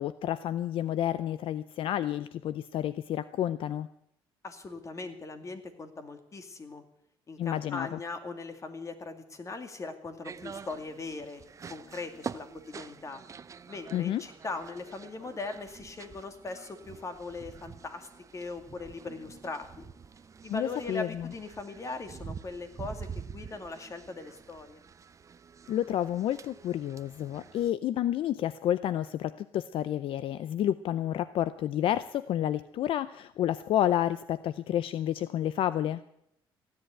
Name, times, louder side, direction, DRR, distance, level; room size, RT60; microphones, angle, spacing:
voice 1, 0.0-3.9 7.4-8.0 13.9-14.2 20.5-21.3 25.7-36.0, left 11 dB, 65° left, 15 dB, 0.5 m, -30 dB
voice 2, 4.4-6.8 7.3-11.4 11.7-13.2 13.7-19.9 20.4-24.8, left 3 dB, 30° left, 7 dB, 2.3 m, -40 dB
sound 1, 10.2-27.7, right 6 dB, 35° right, 0.6 m, -46 dB
15.5 x 10.5 x 8.8 m, 0.77 s
cardioid pair, 95°, 10 cm